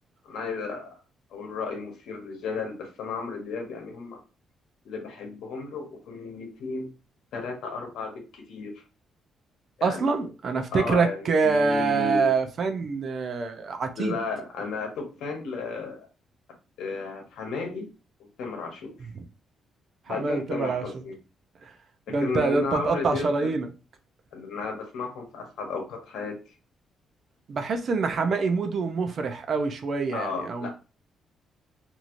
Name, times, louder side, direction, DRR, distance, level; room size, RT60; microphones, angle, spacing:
voice 1, 0.2-1.0 1.3-4.2 4.8-6.9 7.3-8.8 9.8-10.3 10.7-12.3 13.9-16.1 16.8-17.9 18.2-19.0 20.1-21.2 22.1-23.5 24.3-26.4 30.1-30.7, left 4 dB, 80° left, 0.9 m, -34 dB
voice 2, 9.8-14.1 20.1-20.8 22.1-23.7 27.5-30.7, right 4 dB, 50° right, 0.5 m, -25 dB
2.9 x 2.7 x 2.5 m
cardioid pair, 90°, 0 cm